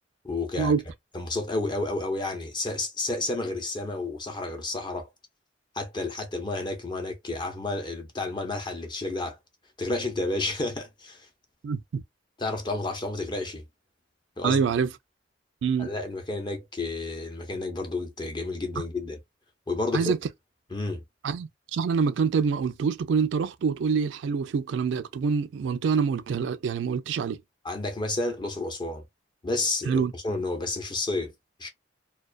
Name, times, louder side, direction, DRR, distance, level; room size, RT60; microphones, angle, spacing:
voice 1, 0.2-0.7 1.1-5.1 5.7-9.4 9.8-11.3 12.4-13.7 14.4-14.6 15.8-19.2 19.7-20.1 20.7-21.0 27.6-29.0 29.4-31.3 31.6-31.7, left 2 dB, 25° left, 0.6 m, -31 dB
voice 2, 11.6-12.0 14.4-14.9 15.6-15.9 19.9-20.2 21.2-27.4 29.9-30.1, right 6 dB, 80° right, 0.3 m, -26 dB
2.3 x 2.2 x 2.3 m
head